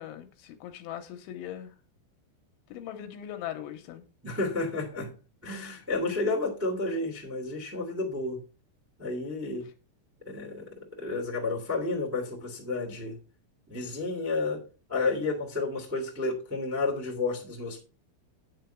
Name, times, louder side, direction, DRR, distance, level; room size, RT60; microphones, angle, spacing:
voice 1, 0.0-1.7 2.7-4.0, left 11 dB, 80° left, 3.0 m, -40 dB
voice 2, 4.2-5.1 5.4-8.4 9.0-9.7 10.2-13.2 13.7-14.6 14.9-17.8, left 3 dB, 20° right, 0.4 m, -31 dB
9.8 x 6.9 x 4.5 m
omnidirectional pair, 5.9 m